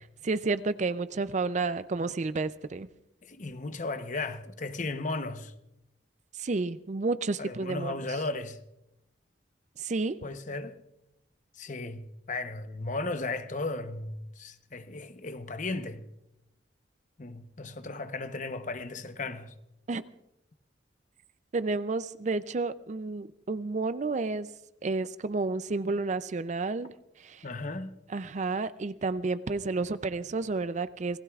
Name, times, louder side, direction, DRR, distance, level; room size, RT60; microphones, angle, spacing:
voice 1, 0.2-2.9 6.4-7.9 9.8-10.2 19.9-20.0 21.5-24.5 24.8-26.9 27.2-27.4 28.1-31.2, right 3 dB, 40° right, 0.4 m, -31 dB
voice 2, 3.2-5.5 7.4-8.6 10.2-10.8 11.6-16.0 17.2-19.5 27.4-27.9, left 3 dB, 45° left, 0.9 m, -35 dB
27.0 x 19.0 x 2.4 m
head